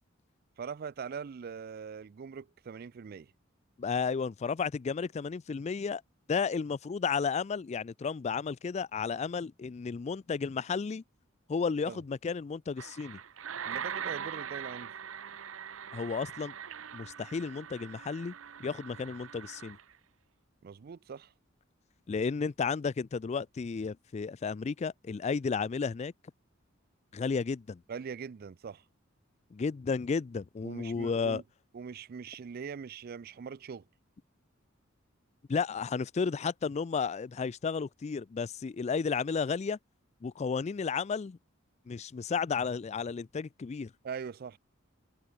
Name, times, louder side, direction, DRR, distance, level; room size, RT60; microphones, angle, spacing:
voice 1, 0.6-3.3 11.9-12.0 13.7-14.9 20.6-21.3 27.9-28.8 30.6-31.4 31.7-33.9 44.0-44.6, right 6 dB, 50° right, 0.4 m, -42 dB
voice 2, 3.8-6.0 6.3-11.0 11.5-13.2 15.9-16.5 16.9-18.3 18.6-19.8 22.1-26.1 27.1-27.8 29.5-31.4 35.5-39.8 40.2-41.4 41.9-43.9, left 5 dB, 35° left, 0.3 m, -33 dB
sound 1, 12.8-19.9, right 8 dB, 85° right, 0.8 m, -42 dB
head